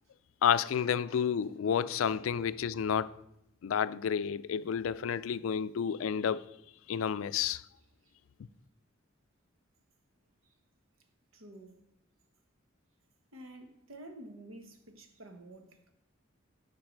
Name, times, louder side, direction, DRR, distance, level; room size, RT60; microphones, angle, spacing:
voice 1, 0.4-3.2 3.6-6.5 6.9-7.6, left 8 dB, 85° left, 0.4 m, -30 dB
voice 2, 11.3-11.8 13.3-15.9, right 1 dB, 90° right, 1.2 m, -50 dB
10.5 x 5.7 x 4.5 m
head